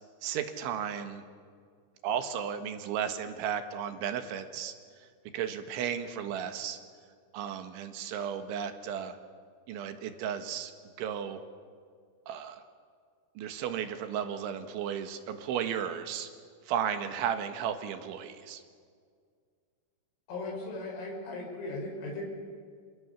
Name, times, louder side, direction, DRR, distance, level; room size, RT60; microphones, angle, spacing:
voice 1, 0.2-1.2 2.0-4.7 5.3-6.8 7.3-9.2 9.7-10.7 11.0-11.4 12.3-12.6 13.4-16.3 16.7-18.6, right 8 dB, 75° right, 8 dB, 3.8 m, -34 dB
voice 2, 20.3-22.3, left 2 dB, 85° left, -1 dB, 8.4 m, -37 dB
29.0 x 27.0 x 7.1 m, 2.1 s
omnidirectional pair, 5.6 m